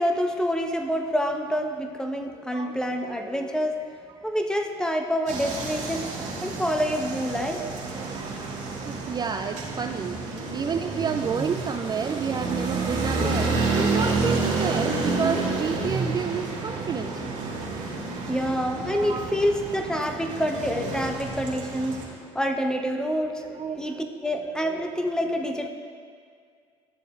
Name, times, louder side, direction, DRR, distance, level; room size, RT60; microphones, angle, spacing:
voice 1, 0.0-3.8 4.2-6.1 6.4-7.6 11.0-11.1 11.6-11.7 13.2-13.3 18.2-22.0 22.3-25.7, equal, 5° left, 5 dB, 0.7 m, -27 dB
sound 1, 5.3-22.0, right 3 dB, 55° right, 2.0 m, -29 dB
voice 2, 7.5-8.3 8.8-17.2 18.9-19.5 21.3-21.4 23.4-23.8, right 6 dB, 30° right, 6 dB, 0.3 m, -30 dB
12.0 x 6.8 x 2.3 m, 2.1 s
hypercardioid pair, 70°, 15 cm